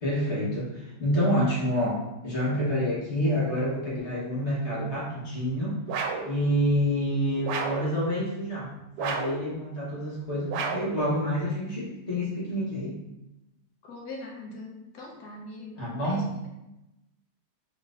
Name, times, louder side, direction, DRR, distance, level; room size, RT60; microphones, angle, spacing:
voice 1, 0.0-5.8 6.2-13.0 15.8-16.3, equal, 45° left, -7 dB, 1.4 m, -28 dB
sound 1, 5.9-6.3 7.4-7.9 9.0-9.5 10.5-11.0, right 5 dB, 90° right, 1.2 m, -31 dB
voice 2, 13.8-16.5, left 2 dB, 75° left, -2 dB, 1.5 m, -42 dB
3.9 x 3.7 x 2.5 m, 0.94 s
omnidirectional pair, 1.8 m